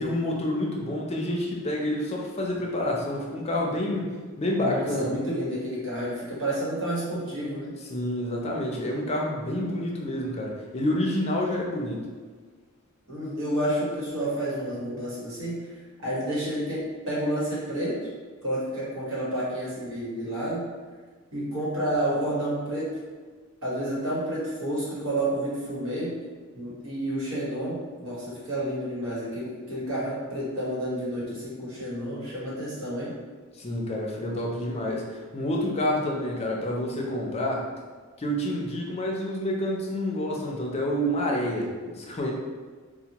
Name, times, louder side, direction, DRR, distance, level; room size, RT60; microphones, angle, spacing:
voice 1, 0.0-5.1 7.9-12.0 33.6-37.6 38.2-42.3, left 1 dB, 30° left, -1 dB, 0.5 m, -28 dB
voice 2, 4.6-7.7 13.1-15.6 16.0-18.1 18.4-20.6 21.3-22.9 23.6-26.1 26.5-33.1, right 1 dB, 75° right, -7 dB, 1.4 m, -30 dB
4.3 x 2.1 x 2.9 m, 1.4 s
head